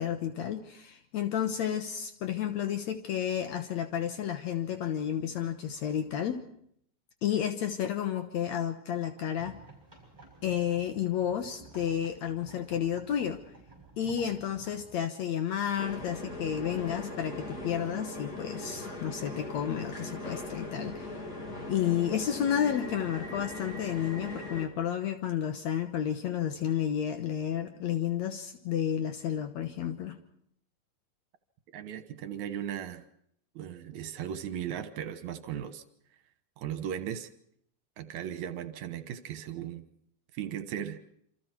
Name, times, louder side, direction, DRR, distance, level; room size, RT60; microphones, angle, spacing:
voice 1, 0.0-6.4 7.2-9.6 10.4-13.4 14.0-21.2 21.7-30.2, left 9 dB, 65° left, 6 dB, 2.2 m, -31 dB
sound 1, 9.2-15.0, right 3 dB, 10° right, 6.6 m, -53 dB
sound 2, 15.8-24.7, left 1 dB, 30° left, 2.9 m, -40 dB
voice 2, 31.7-33.0 33.6-35.8 36.6-37.3 38.0-39.9 40.3-41.0, right 9 dB, 70° right, 10 dB, 2.5 m, -37 dB
28.0 x 26.0 x 4.6 m, 0.69 s
omnidirectional pair, 3.6 m